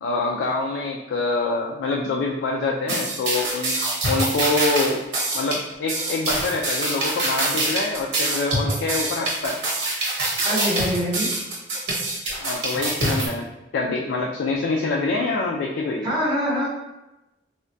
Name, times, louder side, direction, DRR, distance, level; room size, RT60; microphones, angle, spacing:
voice 1, 0.0-3.8 4.1-5.0 5.3-9.6 12.4-13.5 13.7-16.1, left 3 dB, 90° left, -1 dB, 0.3 m, -25 dB
sound 1, 2.9-13.3, right 2 dB, 70° right, 0.8 m, -25 dB
voice 2, 10.4-11.3 16.0-16.7, equal, 25° right, -6 dB, 0.6 m, -24 dB
3.3 x 2.1 x 2.5 m, 0.99 s
head